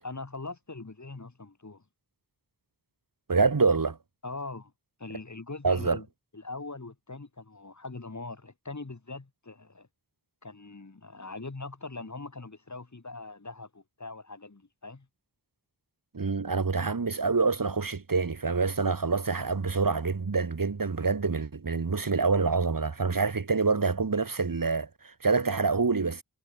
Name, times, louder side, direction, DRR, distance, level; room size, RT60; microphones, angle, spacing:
voice 1, 0.0-1.8 4.2-4.7 5.0-6.1 6.3-9.9 10.4-15.1, left 3 dB, 45° left, 4.7 m, -41 dB
voice 2, 3.3-4.0 5.6-6.0 16.1-26.2, right 4 dB, 55° right, 2.1 m, -26 dB
wide cardioid pair, 60°, 40 cm